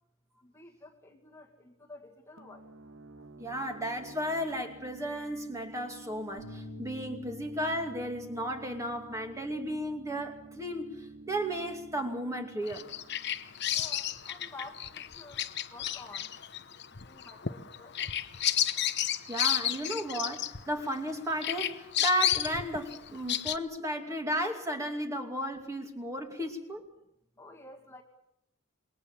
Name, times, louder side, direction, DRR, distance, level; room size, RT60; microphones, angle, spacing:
voice 1, 0.4-2.7 13.7-16.3 17.0-18.1 27.4-28.0, left 2 dB, 15° left, 1 dB, 2.1 m, -50 dB
sound 1, 2.4-13.9, right 3 dB, 65° right, 2.1 m, -50 dB
voice 2, 3.4-12.9 19.3-26.8, equal, 15° right, 3 dB, 2.6 m, -34 dB
sound 2, 6.4-12.6, left 1 dB, 75° left, 1.9 m, -52 dB
Bird vocalization bird call bird song, 12.7-21.1 21.4-23.6, left 11 dB, 50° left, 1.0 m, -32 dB
27.5 x 22.0 x 7.4 m, 0.80 s
head